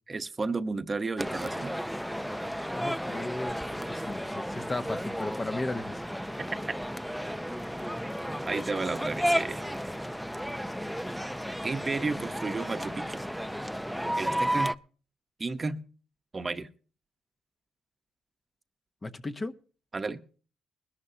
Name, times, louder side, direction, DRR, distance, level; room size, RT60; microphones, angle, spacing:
voice 1, 0.1-1.8 6.7-6.8 8.2-9.7 11.6-13.2 14.2-14.7 15.4-15.8 16.3-16.7 19.9-20.2, right 3 dB, 30° right, 1.0 m, -32 dB
sound 1, 1.2-14.8, equal, ahead, 0.5 m, -33 dB
voice 2, 2.7-6.0 19.0-19.5, left 2 dB, 25° left, 0.9 m, -35 dB
21.0 x 12.0 x 2.8 m
cardioid pair, 90°, 0 cm